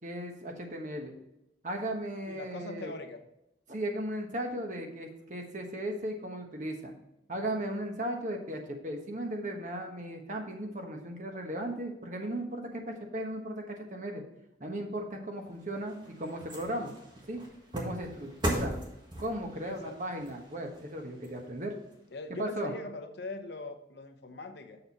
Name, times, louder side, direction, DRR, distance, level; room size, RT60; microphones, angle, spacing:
voice 1, 0.0-1.1 1.6-2.9 3.7-6.9 7.3-14.2 14.6-16.9 17.3-17.4 17.7-18.8 19.2-21.7 22.4-22.7, right 1 dB, 45° right, 3 dB, 1.2 m, -36 dB
voice 2, 2.3-3.2 19.6-20.2 22.1-24.8, left 2 dB, 70° left, 7 dB, 0.8 m, -42 dB
sound 1, 15.4-21.9 22.4-22.5, right 1 dB, 25° right, 1.6 m, -39 dB
6.9 x 6.6 x 4.2 m, 0.86 s
head